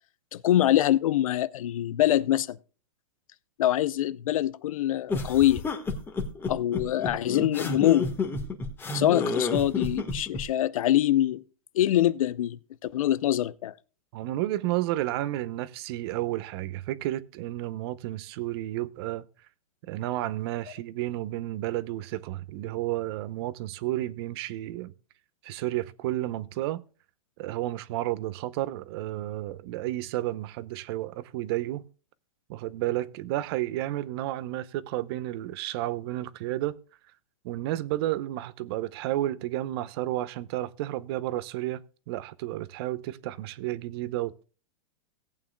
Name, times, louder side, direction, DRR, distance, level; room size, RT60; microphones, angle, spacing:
voice 1, 0.3-2.6 3.6-5.6 6.5-8.1 8.9-11.4 11.7-13.7, left 12 dB, 70° left, 0.7 m, -24 dB
sound 1, 5.1-10.4, left 3 dB, 10° left, 1.5 m, -30 dB
voice 2, 14.1-19.3 19.9-24.9 25.4-26.8 27.4-31.8 32.5-36.8 37.4-44.4, right 15 dB, 45° right, 0.7 m, -31 dB
18.0 x 8.7 x 2.2 m
hypercardioid pair, 150°, 18 cm